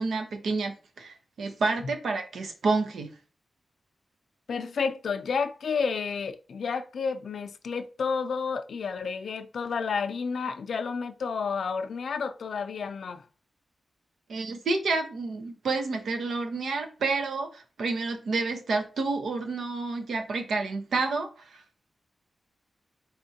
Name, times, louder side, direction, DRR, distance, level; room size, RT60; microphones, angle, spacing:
voice 1, 0.0-3.1 14.3-21.6, right 3 dB, 85° right, 0.8 m, -29 dB
voice 2, 4.5-13.2, left 5 dB, 80° left, 0.4 m, -31 dB
4.3 x 3.6 x 2.8 m
wide cardioid pair, 85°, 0 cm